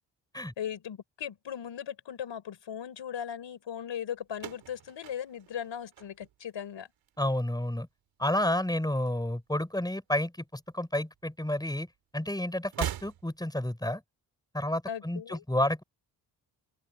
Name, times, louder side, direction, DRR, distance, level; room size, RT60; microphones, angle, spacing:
voice 1, 0.6-6.9 14.9-15.4, left 9 dB, 75° left, 4.8 m, -38 dB
sound 1, 4.3-6.7 7.0-7.6 8.6-9.6 9.9-10.0 11.1-11.2 12.6-13.6, right 11 dB, 85° right, 2.9 m, -40 dB
voice 2, 7.2-7.9 8.2-11.9 12.1-14.0 14.5-15.8, left 1 dB, 10° left, 5.3 m, -30 dB
open air
supercardioid pair, 50°, 45 cm